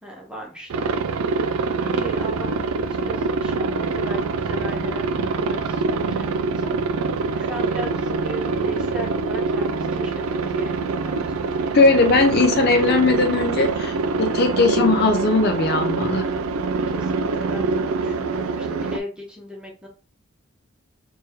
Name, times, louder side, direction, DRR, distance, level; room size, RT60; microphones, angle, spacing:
voice 1, 0.0-1.0 1.8-6.9 7.4-11.4 16.9-19.9, equal, 5° right, -2 dB, 1.0 m, -37 dB
Aircraft, 0.7-19.0, right 4 dB, 85° right, 0.4 m, -24 dB
voice 2, 11.7-16.3, left 3 dB, 50° left, 5 dB, 0.5 m, -19 dB
3.0 x 3.0 x 3.4 m, 0.36 s
head